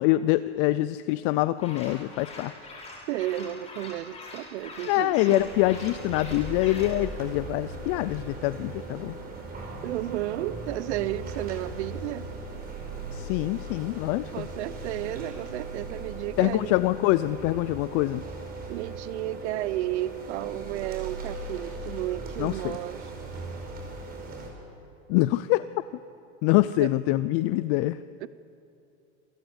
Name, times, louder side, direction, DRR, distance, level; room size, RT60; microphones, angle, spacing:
voice 1, 0.0-2.5 4.8-9.1 13.1-14.5 16.4-18.2 22.4-22.8 25.1-25.6 26.4-28.0, left 17 dB, 40° left, 15 dB, 0.5 m, -25 dB
sound 1, 1.6-7.0, left 2 dB, 20° left, 6.8 m, -44 dB
voice 2, 3.1-5.4 9.8-12.3 14.3-16.8 18.7-23.0 26.8-26.9 28.2-28.3, right 15 dB, 75° right, 17 dB, 0.8 m, -32 dB
sound 2, 5.4-24.5, right 3 dB, 25° right, 5.2 m, -38 dB
26.5 x 18.0 x 8.0 m, 2.8 s
supercardioid pair, 145°, 34 cm